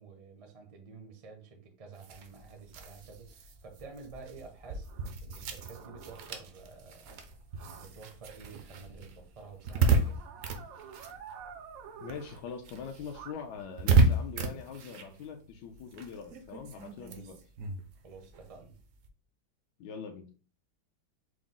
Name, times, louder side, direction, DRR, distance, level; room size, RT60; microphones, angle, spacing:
voice 1, 0.0-4.9 5.2-7.1 7.7-10.2 17.0-17.3 18.0-18.7, right 4 dB, 40° right, 3 dB, 0.5 m, -50 dB
sound 1, 2.0-11.9 12.1-19.1, right 3 dB, 65° right, 0.8 m, -33 dB
sound 2, 3.1-13.3, right 6 dB, 80° right, 1.2 m, -51 dB
voice 2, 12.0-17.4 19.8-20.3, left 6 dB, 75° left, 4 dB, 1.1 m, -43 dB
4.8 x 2.0 x 3.7 m, 0.36 s
omnidirectional pair, 2.0 m